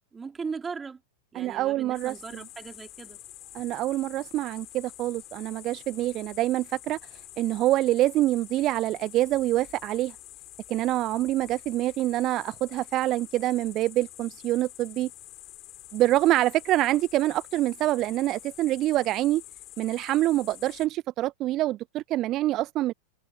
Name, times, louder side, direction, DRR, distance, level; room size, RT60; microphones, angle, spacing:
voice 1, 0.1-1.0 1.3-3.2, right 5 dB, 15° right, 4.0 m, -38 dB
voice 2, 1.3-2.4 3.5-10.1 10.7-15.1 15.9-19.4 19.8-22.9, right 15 dB, 35° right, 0.8 m, -26 dB
sound 1, 1.9-20.9, left 15 dB, 35° left, 5.7 m, -47 dB
figure-of-eight pair, 90°, 0 cm